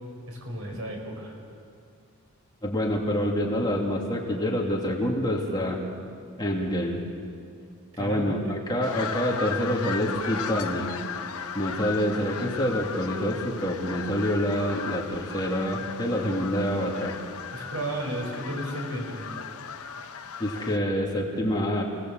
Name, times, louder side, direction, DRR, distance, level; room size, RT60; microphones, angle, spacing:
voice 1, 0.3-1.4 7.9-8.3 17.5-19.3, right 1 dB, 65° right, 1 dB, 6.3 m, -33 dB
voice 2, 2.6-5.8 6.4-7.0 8.0-10.9 11.5-17.2 20.4-21.8, equal, 20° left, -1 dB, 2.8 m, -27 dB
sound 1, 8.8-20.8, left 6 dB, 80° left, 1.1 m, -36 dB
29.0 x 19.0 x 8.0 m, 2.4 s
head